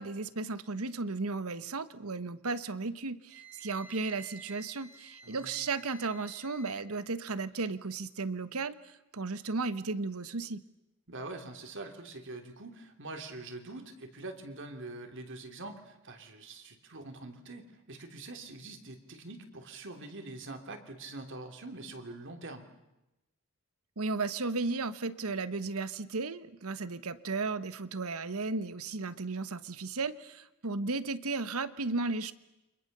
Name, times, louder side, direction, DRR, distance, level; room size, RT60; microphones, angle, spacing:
voice 1, 0.0-10.6 24.0-32.3, right 3 dB, 80° right, 14 dB, 1.2 m, -35 dB
Wind instrument woodwind instrument, 3.3-6.8, right 2 dB, 10° right, 2.0 m, -52 dB
voice 2, 5.2-5.5 11.1-22.7, right 2 dB, 60° right, 5 dB, 3.2 m, -44 dB
29.5 x 25.5 x 6.8 m, 0.95 s
head